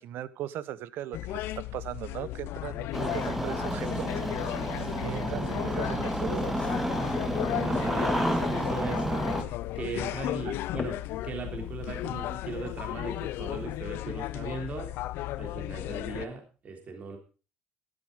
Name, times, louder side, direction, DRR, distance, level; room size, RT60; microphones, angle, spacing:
voice 1, 0.0-4.1 5.0-6.6 10.4-10.5, right 11 dB, 65° right, 17 dB, 1.0 m, -38 dB
sound 1, 1.1-16.3, left 16 dB, 75° left, 0.6 m, -35 dB
Engine starting, 2.9-9.4, right 1 dB, 5° right, 1.9 m, -30 dB
sound 2, 5.6-13.7, left 5 dB, 30° left, 1.9 m, -44 dB
voice 2, 7.6-9.2 9.7-10.9 11.2-14.9 15.4-17.2, right 3 dB, 40° right, 3 dB, 3.4 m, -38 dB
12.5 x 12.0 x 5.1 m, 0.35 s
cardioid pair, 135°, 4 cm